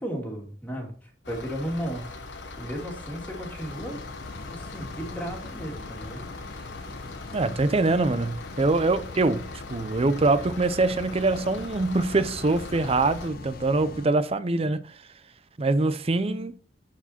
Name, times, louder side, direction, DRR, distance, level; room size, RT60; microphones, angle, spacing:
voice 1, 0.0-2.1 2.6-4.0 4.5-6.2, equal, 10° left, 2.6 m, -34 dB
sound 1, 1.2-13.3, left 3 dB, 80° left, 1.2 m, -41 dB
sound 2, 3.6-14.1, left 3 dB, 55° left, 0.8 m, -42 dB
voice 2, 7.3-14.8 15.6-16.5, right 3 dB, 35° right, 0.6 m, -24 dB
10.5 x 4.9 x 4.3 m
head